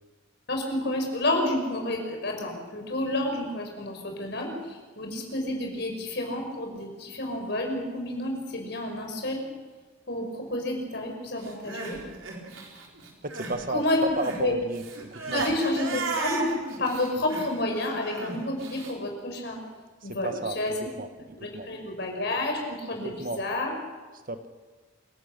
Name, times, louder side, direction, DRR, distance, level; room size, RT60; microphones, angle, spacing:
voice 1, 0.5-9.4 10.1-12.0 13.7-14.0 14.3-14.5 15.3-16.5 16.8-19.6 20.0-20.7 21.4-23.7, left 1 dB, 55° left, 2 dB, 5.4 m, -30 dB
Crying sobbing, 11.4-13.6 13.9-18.9, right 3 dB, 85° right, 4.2 m, -35 dB
voice 2, 13.2-13.8 14.2-14.8 15.1-15.5 20.0-21.1 21.5-21.7 23.0-23.4 24.3-24.4, right 2 dB, 45° right, 9 dB, 1.3 m, -33 dB
27.0 x 17.5 x 6.7 m, 1.3 s
head